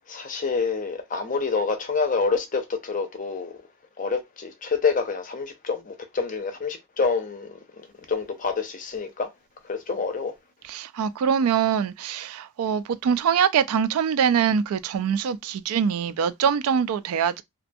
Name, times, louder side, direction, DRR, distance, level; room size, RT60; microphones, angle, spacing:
voice 1, 0.1-3.5 4.0-7.6 8.1-9.3 9.7-10.3, left 4 dB, 35° left, 0.5 m, -27 dB
voice 2, 10.6-17.4, right 7 dB, 85° right, 0.3 m, -23 dB
2.5 x 2.2 x 2.5 m
head